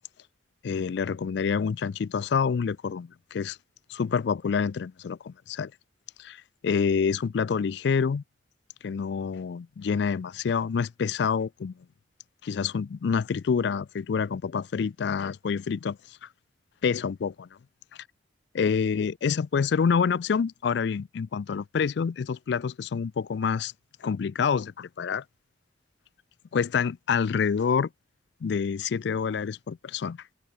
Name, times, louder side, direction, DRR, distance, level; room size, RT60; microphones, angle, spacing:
voice 1, 0.6-3.6 3.9-5.7 6.2-8.2 8.8-11.7 12.4-16.0 16.8-17.5 18.5-23.7 24.0-25.2 26.5-27.9 28.4-30.2, left 6 dB, 65° left, 0.4 m, -27 dB
head